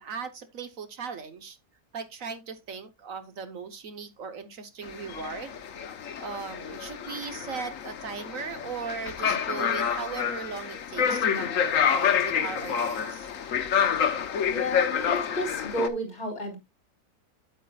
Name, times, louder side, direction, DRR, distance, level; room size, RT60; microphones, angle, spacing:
voice 1, 0.0-1.6 1.9-5.6 6.2-13.3, right 6 dB, 65° right, 1.3 m, -38 dB
sound 1, 4.8-15.9, left 7 dB, 65° left, 1.3 m, -28 dB
voice 2, 14.5-16.6, left 1 dB, 50° left, 4.0 m, -31 dB
9.1 x 8.7 x 2.3 m
omnidirectional pair, 1.6 m